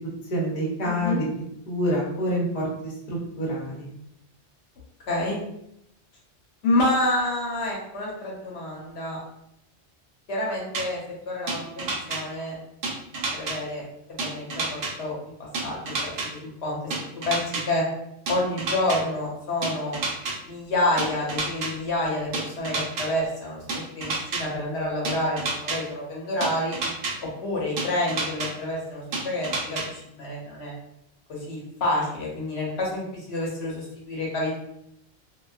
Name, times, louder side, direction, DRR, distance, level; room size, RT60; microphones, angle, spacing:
voice 1, 0.3-1.3 1.7-3.9, equal, 40° left, -4 dB, 0.8 m, -27 dB
voice 2, 0.8-1.2 5.1-5.4 6.6-9.2 10.3-11.0 11.3-12.5 13.3-13.8 14.1-15.1 15.6-16.1 16.4-16.8 17.3-17.8 18.3-20.0 20.4-26.8 27.4-30.7 31.3-34.6, left 1 dB, 70° left, -4 dB, 0.9 m, -28 dB
sound 1, 10.7-10.8 11.5-12.2 12.8-13.6 14.2-14.9 15.5-16.3 16.9-17.6 18.3-19.0 19.6-20.3 21.0-21.7 22.3-23.1 23.7-24.4 25.0-25.8 26.4-27.1 27.8-28.5 29.1-29.8, right 3 dB, 65° right, 0.8 m, -28 dB
2.3 x 2.2 x 2.4 m, 0.77 s
omnidirectional pair, 1.1 m